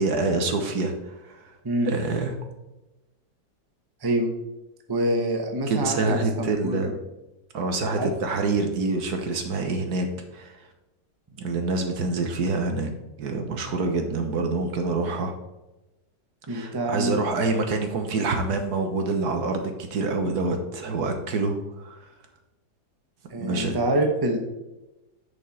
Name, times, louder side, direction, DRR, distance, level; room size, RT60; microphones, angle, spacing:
voice 1, 0.0-1.5 1.8-2.3 5.7-6.9 7.5-10.7 11.4-12.9 13.2-15.3 16.5-22.1 23.4-23.8, right 3 dB, 60° right, 5 dB, 1.5 m, -26 dB
voice 2, 4.9-6.9 8.0-8.1 16.5-17.2 23.3-24.4, right 1 dB, 20° right, 3 dB, 0.6 m, -26 dB
10.5 x 5.4 x 4.2 m, 1.0 s
omnidirectional pair, 2.0 m